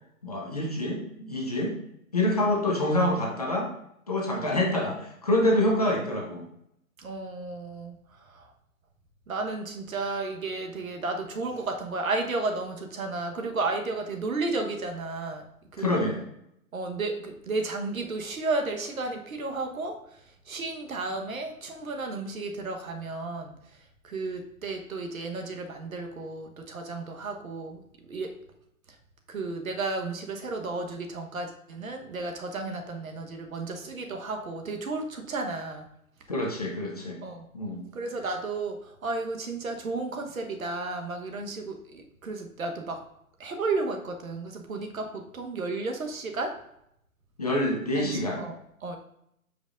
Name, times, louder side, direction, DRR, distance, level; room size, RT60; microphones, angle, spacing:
voice 1, 0.2-1.7 2.1-3.7 4.1-6.5 15.8-16.2 36.3-37.2 37.5-37.8 47.4-48.4, left 1 dB, 25° left, -1 dB, 0.7 m, -26 dB
voice 2, 2.3-2.6 4.3-4.5 7.0-8.5 9.3-15.4 15.7-15.9 16.7-20.0 20.5-23.5 24.0-27.8 28.1-28.3 29.3-35.8 37.2-37.4 37.9-43.0 43.4-46.5 47.9-48.6 48.8-49.0, right 3 dB, 70° right, 4 dB, 1.2 m, -33 dB
9.2 x 5.1 x 2.5 m, 0.77 s
hypercardioid pair, 175°, 43 cm